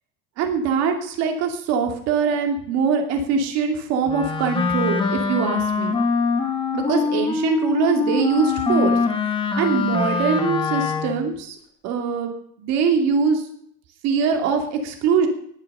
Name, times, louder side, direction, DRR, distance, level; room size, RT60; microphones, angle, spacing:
voice 1, 0.4-6.0 6.7-11.6 11.8-12.3 12.6-13.4 14.0-15.3, right 6 dB, 40° right, 4 dB, 2.5 m, -22 dB
Wind instrument woodwind instrument, 4.1-11.3, left 4 dB, 15° left, 1.1 m, -23 dB
19.0 x 6.6 x 6.7 m, 0.67 s
cardioid pair, 180°, 39 cm